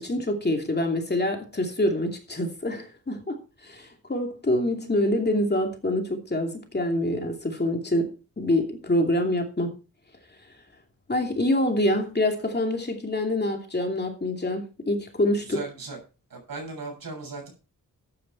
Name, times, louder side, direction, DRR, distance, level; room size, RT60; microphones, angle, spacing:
voice 1, 0.0-9.7 11.1-15.6, left 1 dB, 30° left, 2.8 m, -26 dB
voice 2, 15.5-16.0 16.3-17.5, right 3 dB, 80° right, 7.0 m, -37 dB
13.0 x 9.1 x 4.6 m
wide cardioid pair, 110°, 34 cm